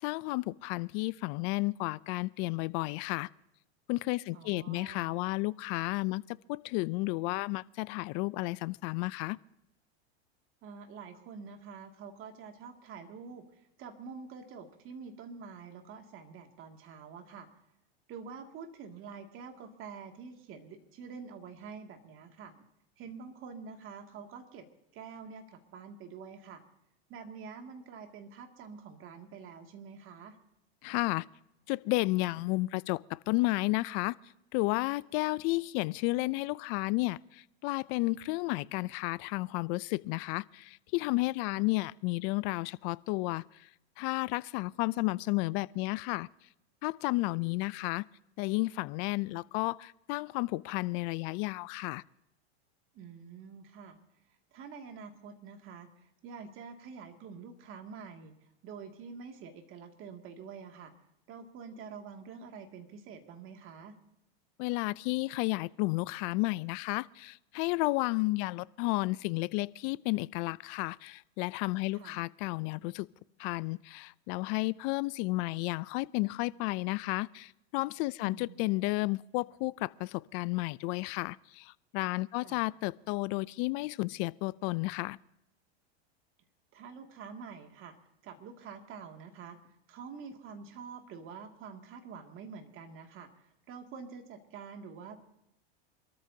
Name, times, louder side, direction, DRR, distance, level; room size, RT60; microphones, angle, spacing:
voice 1, 0.0-3.3 3.9-9.4 30.8-31.2 31.7-34.2 34.5-43.7 44.0-46.3 46.8-48.0 48.4-52.0 64.6-73.1 73.4-85.2, left 22 dB, 45° left, 0.4 m, -32 dB
voice 2, 4.3-5.1 10.6-17.5 18.1-22.6 23.0-24.7 24.9-26.6 27.1-30.4 41.5-41.7 52.9-54.0 54.5-58.3 58.6-60.9 61.3-63.9 71.9-72.2 78.2-78.6 82.4-82.6 86.7-88.0 88.2-89.6 89.9-93.3 93.7-95.2, right 5 dB, 40° right, 2.3 m, -47 dB
27.0 x 13.5 x 2.8 m
supercardioid pair, 125°, 33 cm